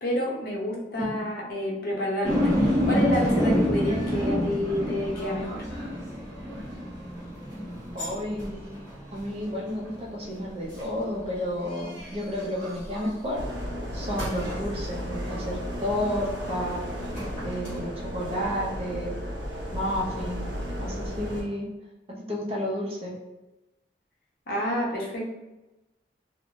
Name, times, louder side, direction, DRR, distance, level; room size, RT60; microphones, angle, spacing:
voice 1, 0.0-5.7 24.5-25.2, equal, 55° left, -3 dB, 0.6 m, -29 dB
sound 1, 2.2-13.5 14.2-17.8, equal, 5° left, 1.4 m, -29 dB
voice 2, 7.9-8.7 9.1-13.4 13.9-16.9 17.4-19.2 19.7-20.4 20.8-21.7 22.3-23.1, equal, 35° right, -3 dB, 0.5 m, -31 dB
sound 2, 13.4-21.4, equal, 80° right, 0.6 m, -34 dB
2.6 x 2.1 x 3.0 m, 1.0 s
head